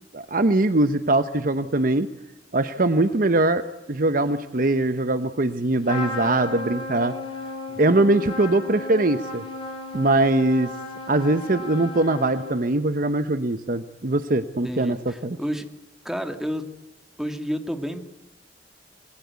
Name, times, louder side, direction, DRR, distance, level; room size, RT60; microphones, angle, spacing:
voice 1, 0.1-2.1 2.5-3.6 3.9-7.1 7.8-9.4 9.9-10.7 11.1-15.4, right 2 dB, 50° right, 11 dB, 1.0 m, -22 dB
Trumpet, 5.8-12.8, left 2 dB, 30° left, 6.8 m, -34 dB
voice 2, 14.6-15.7 16.0-16.7 17.2-18.0, equal, ahead, 6 dB, 2.1 m, -30 dB
27.5 x 21.0 x 8.3 m, 0.93 s
head